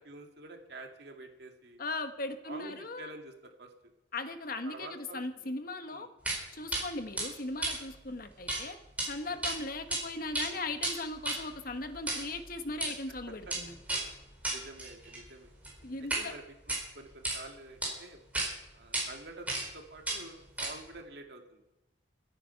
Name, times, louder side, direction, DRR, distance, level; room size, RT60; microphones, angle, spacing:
voice 1, 0.0-1.8 2.4-3.7 4.6-5.5 5.9-6.1 9.2-9.4 13.3-13.5 14.5-15.5 16.2-18.2 18.7-21.6, right 2 dB, 60° right, 3 dB, 2.2 m, -48 dB
voice 2, 1.8-3.1 4.1-6.1 6.5-8.8 9.0-13.7 15.8-16.3, left 2 dB, 50° left, 9 dB, 1.1 m, -38 dB
sound 1, 6.2-6.4 6.7-6.8 7.2-8.6 8.9-9.1 9.4-10.0 10.3-16.3 16.6-17.4 17.8-17.9 18.3-18.5 18.9-19.0 19.5-19.8 20.0-21.0, right 2 dB, 10° right, 4.7 m, -34 dB
24.5 x 9.2 x 5.7 m, 0.93 s
head